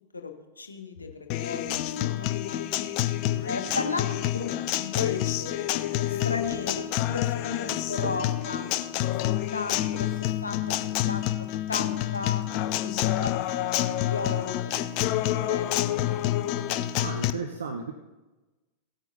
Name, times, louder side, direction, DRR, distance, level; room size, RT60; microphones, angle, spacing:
voice 1, 0.1-2.6 3.4-9.1 9.5-10.7 11.1-11.3 11.7-12.4 12.8-13.4 13.8-16.3, left 4 dB, 80° left, 5 dB, 1.1 m, -35 dB
Acoustic guitar, 1.3-17.3, left 13 dB, 45° left, 0.5 m, -28 dB
voice 2, 3.3-3.8 17.0-17.9, right 5 dB, 70° right, 5 dB, 0.8 m, -35 dB
sound 1, 7.4-16.3, right 4 dB, 20° right, 1.4 m, -49 dB
17.5 x 8.9 x 2.7 m, 1.1 s
figure-of-eight pair, 90°, 0 cm